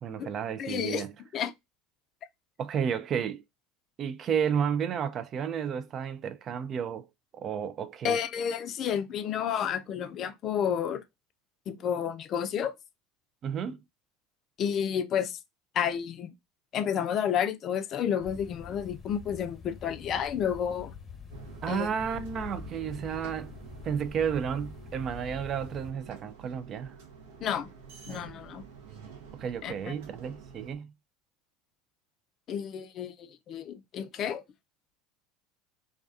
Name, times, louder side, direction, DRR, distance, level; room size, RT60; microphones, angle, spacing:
voice 1, 0.0-1.1 2.6-3.4 4.0-7.1 7.3-8.2 13.4-13.8 21.6-23.5 23.8-26.9 29.3-30.9, right 7 dB, 40° right, 0.3 m, -32 dB
voice 2, 0.6-1.1 1.3-1.5 8.0-11.0 11.7-12.7 14.6-15.4 15.7-16.3 16.7-20.9 21.7-21.9 27.4-27.7 28.1-28.6 29.6-29.7 32.5-34.4, left 8 dB, 45° left, 0.4 m, -30 dB
sound 1, 18.2-25.9, left 6 dB, 20° left, 0.7 m, -46 dB
sound 2, 21.3-30.7, right 6 dB, 70° right, 0.7 m, -48 dB
2.3 x 2.2 x 2.4 m
hypercardioid pair, 75°, 0 cm